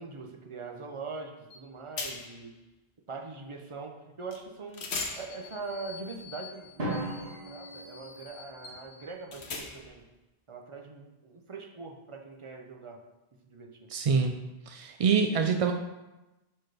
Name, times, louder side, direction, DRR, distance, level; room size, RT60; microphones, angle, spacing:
voice 1, 0.0-2.5 3.1-4.9 5.2-10.0 10.5-13.0 13.4-13.9, right 4 dB, 35° right, 2 dB, 0.7 m, -42 dB
sound 1, 1.5-1.6 2.0-2.5 4.3-4.4 4.7-10.0, left 4 dB, 90° left, 1.2 m, -41 dB
Drum, 6.8-8.8, right 1 dB, 70° right, 2.1 m, -37 dB
voice 2, 13.9-14.3 14.7-15.7, right 5 dB, 55° right, 3 dB, 0.4 m, -25 dB
6.1 x 4.5 x 4.9 m, 1.0 s
omnidirectional pair, 1.1 m